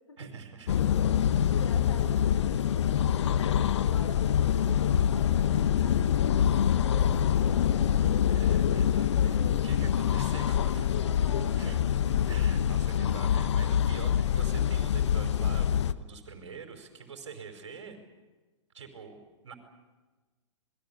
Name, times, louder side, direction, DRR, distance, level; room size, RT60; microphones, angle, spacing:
voice 1, 0.2-0.8 1.4-1.5 8.4-9.4 9.6-10.9 11.5-11.8 12.3-15.7 16.0-18.0 18.7-19.5, right 6 dB, 75° right, 6 dB, 5.0 m, -45 dB
sound 1, 0.7-15.9, left 9 dB, 65° left, 1.0 m, -25 dB
voice 2, 1.2-9.8 10.9-11.7, left 3 dB, 85° left, 6 dB, 5.3 m, -46 dB
27.5 x 21.5 x 7.1 m, 1.3 s
hypercardioid pair, 110°, 16 cm